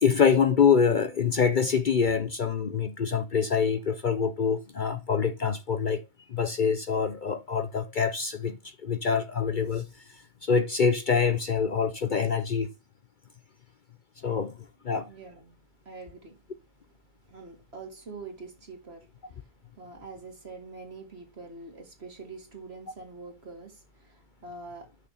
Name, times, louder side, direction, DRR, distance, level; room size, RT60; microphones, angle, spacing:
voice 1, 0.0-6.0 6.3-9.8 10.4-12.7 14.2-14.6 14.8-15.1, left 6 dB, 55° left, 0.5 m, -25 dB
voice 2, 15.1-15.6 15.9-16.4 17.3-19.1 19.8-24.9, right 3 dB, 45° right, 2.3 m, -44 dB
6.6 x 6.3 x 5.6 m
omnidirectional pair, 1.6 m